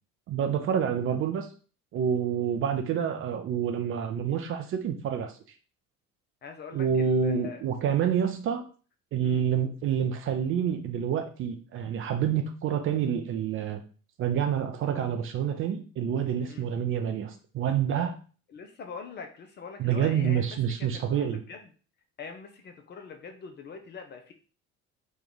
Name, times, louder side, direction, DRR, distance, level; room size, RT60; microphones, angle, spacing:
voice 1, 0.3-1.5 1.9-5.3 6.7-8.6 9.1-13.8 14.2-18.1 19.8-21.4, right 8 dB, 30° right, 5 dB, 0.4 m, -28 dB
voice 2, 6.4-7.6 9.2-9.4 16.4-16.7 18.5-21.7 22.2-24.3, left 5 dB, 25° left, 4 dB, 0.5 m, -43 dB
3.0 x 2.2 x 3.8 m, 0.38 s
figure-of-eight pair, 55°, 41 cm